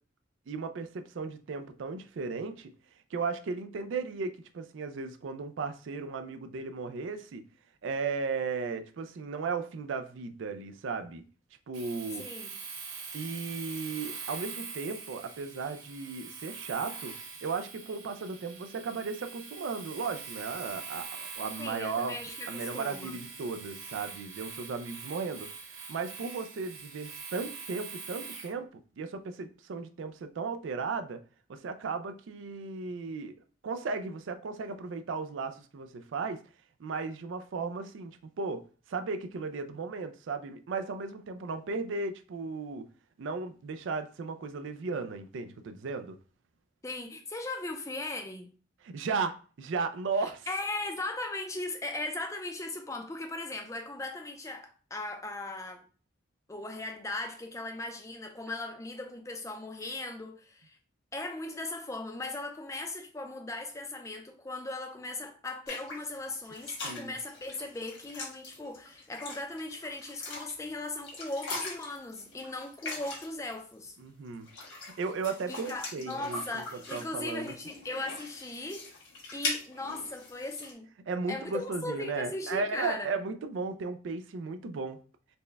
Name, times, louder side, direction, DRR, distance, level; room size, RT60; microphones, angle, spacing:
voice 1, 0.5-2.7 3.1-7.4 7.8-11.2 11.7-12.3 13.1-17.1 17.4-22.2 22.5-25.5 25.9-31.2 31.5-33.3 33.6-36.4 36.8-38.6 38.9-42.9 43.2-46.2 48.8-50.5 66.8-67.2 74.0-74.5 74.8-76.4 76.9-77.5 81.1-85.0, right 4 dB, 70° right, 0.4 m, -35 dB
Domestic sounds home sounds, 11.7-28.5, right 5 dB, 90° right, 0.9 m, -43 dB
voice 2, 12.1-12.5 21.6-23.2 46.8-48.5 50.2-55.8 56.5-60.8 61.1-74.0 75.5-78.9 79.3-80.9 81.3-83.1, left 2 dB, 15° left, 0.4 m, -38 dB
sound 1, 65.7-73.5 74.3-80.7, left 2 dB, 70° left, 1.4 m, -41 dB
4.2 x 2.2 x 3.3 m
head